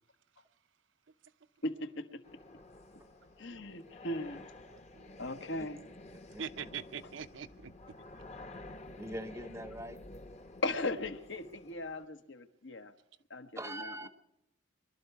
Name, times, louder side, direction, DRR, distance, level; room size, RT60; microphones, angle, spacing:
voice 1, 1.6-2.2 3.4-4.4 5.2-5.8 10.6-12.9 13.3-14.1, left 2 dB, 75° left, 8 dB, 1.1 m, -38 dB
sound 1, 2.2-12.0, left 2 dB, 35° left, 0.9 m, -51 dB
voice 2, 4.7-5.2 6.4-7.7 8.5-9.0, right 7 dB, 75° right, 11 dB, 0.7 m, -44 dB
voice 3, 9.0-10.0 13.6-14.1, right 1 dB, 15° right, 12 dB, 0.7 m, -42 dB
22.5 x 12.0 x 4.7 m, 0.82 s
head